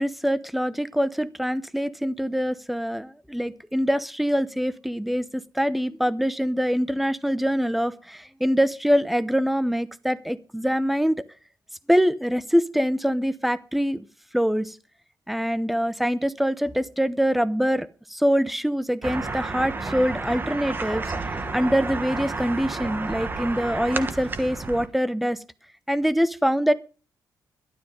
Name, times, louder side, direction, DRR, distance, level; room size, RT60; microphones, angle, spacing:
voice 1, 0.0-11.2 11.9-14.0 14.3-14.8 15.3-25.4 25.9-26.7, equal, ahead, 15 dB, 0.8 m, -24 dB
sound 1, 19.0-24.9, right 3 dB, 30° right, 1.3 m, -31 dB
12.5 x 12.5 x 5.2 m, 0.36 s
cardioid pair, 120°, 7 cm